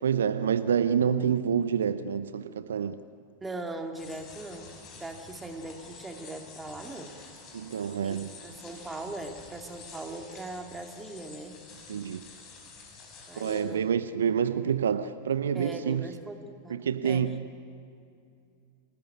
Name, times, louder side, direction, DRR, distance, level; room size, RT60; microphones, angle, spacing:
voice 1, 0.0-3.0 7.5-8.3 11.9-12.3 13.4-16.1 16.7-17.4, right 7 dB, 65° right, 0.7 m, -27 dB
voice 2, 3.4-7.1 8.0-11.6 13.3-13.9 15.5-17.3, right 2 dB, 10° right, 2.4 m, -40 dB
sound 1, 4.0-13.6, left 4 dB, 35° left, 5.7 m, -49 dB
26.5 x 19.5 x 9.5 m
figure-of-eight pair, 90°, 0 cm